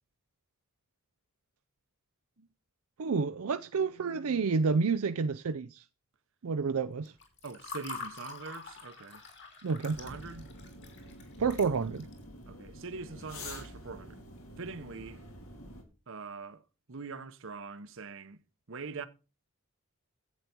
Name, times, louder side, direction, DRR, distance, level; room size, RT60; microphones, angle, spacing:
voice 1, 3.0-5.8 6.4-7.1 9.6-10.0 11.4-12.1, right 5 dB, 80° right, 0.5 m, -29 dB
Water / Fill (with liquid), 7.1-12.2, left 4 dB, 55° left, 3.4 m, -45 dB
voice 2, 7.4-9.2 10.0-10.5 12.5-14.2 14.6-15.2 16.1-16.6 16.9-18.4 18.7-19.1, right 4 dB, 60° right, 0.9 m, -43 dB
sound 1, 9.9-15.8, left 1 dB, 75° left, 2.8 m, -47 dB
11.0 x 8.4 x 4.5 m
head